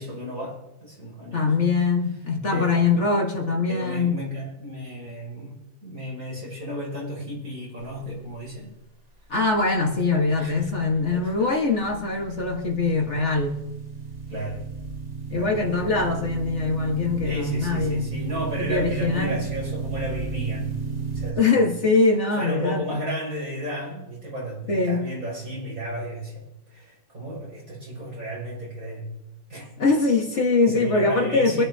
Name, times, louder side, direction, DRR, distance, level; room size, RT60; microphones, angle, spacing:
voice 1, 0.0-1.5 2.5-2.7 3.7-5.5 5.8-8.8 10.4-10.7 11.1-11.5 14.3-14.6 15.3-15.5 17.2-20.7 21.1-21.6 22.3-29.1 29.5-29.7 30.6-31.7, equal, 70° right, 6.9 m, -34 dB
voice 2, 1.3-4.2 9.3-13.6 15.3-18.1 18.6-19.5 21.4-23.0 24.7-25.1 29.8-31.7, left 3 dB, 50° left, 1.8 m, -22 dB
sound 1, 10.5-21.3, right 5 dB, 25° right, 1.6 m, -34 dB
24.5 x 11.0 x 2.8 m
omnidirectional pair, 1.6 m